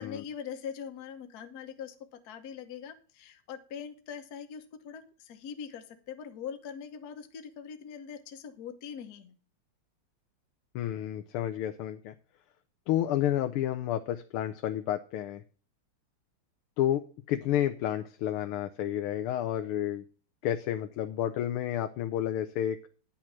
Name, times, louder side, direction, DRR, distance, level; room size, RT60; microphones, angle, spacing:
voice 1, 0.0-9.4, left 7 dB, 55° left, 7 dB, 1.5 m, -42 dB
voice 2, 10.8-12.1 12.9-15.4 16.8-17.0 17.3-20.0 20.4-22.8, left 11 dB, 90° left, 7 dB, 1.6 m, -30 dB
10.5 x 6.4 x 5.9 m, 0.38 s
omnidirectional pair, 2.3 m